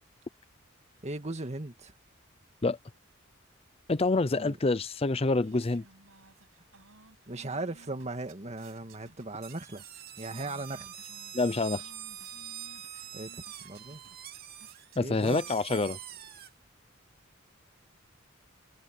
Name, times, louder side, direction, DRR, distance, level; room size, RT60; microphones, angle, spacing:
voice 1, 1.0-1.9 4.3-4.6 7.3-9.8 10.2-10.9 13.1-14.0 15.0-15.4, right 2 dB, 35° right, 2.0 m, -38 dB
voice 2, 3.9-5.8 11.3-11.8 15.0-16.0, left 3 dB, 30° left, 0.6 m, -27 dB
sound 1, 4.9-15.5, right 3 dB, 80° right, 7.7 m, -58 dB
sound 2, 9.4-16.5, right 10 dB, 50° right, 2.5 m, -45 dB
open air
head